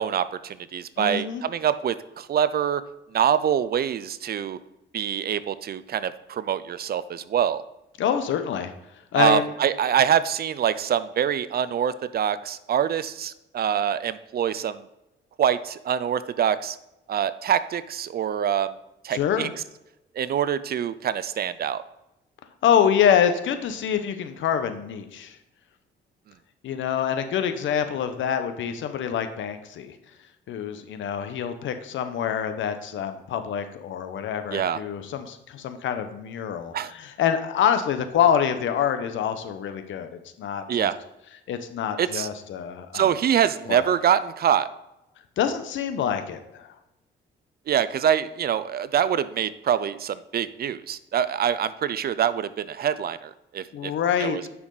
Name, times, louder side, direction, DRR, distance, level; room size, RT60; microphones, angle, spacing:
voice 1, 0.0-2.8 3.1-4.6 4.9-7.6 9.1-14.8 15.4-16.8 17.1-18.7 19.0-19.5 20.2-21.8 34.5-34.8 36.7-36.9 40.7-41.0 42.0-42.3 42.9-44.7 47.7-53.9 54.2-54.4, right 9 dB, 50° right, 15 dB, 0.5 m, -25 dB
voice 2, 1.0-1.4 8.0-8.7 9.1-9.5 19.1-19.5 22.6-25.4 26.6-30.0 30.5-40.9 41.5-43.1 43.7-43.8 45.4-46.7 53.7-54.5, left 8 dB, 75° left, 8 dB, 1.0 m, -26 dB
9.3 x 6.2 x 4.0 m, 0.91 s
cardioid pair, 90°, 20 cm